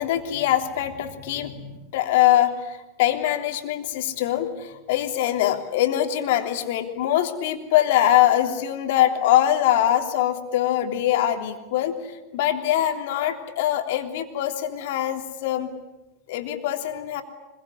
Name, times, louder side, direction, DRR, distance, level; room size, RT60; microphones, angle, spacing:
voice 1, 0.0-11.9 12.3-15.7 16.3-17.2, left 12 dB, 65° left, 5 dB, 3.3 m, -23 dB
25.5 x 22.5 x 9.8 m, 0.99 s
hypercardioid pair, 90°, 0 cm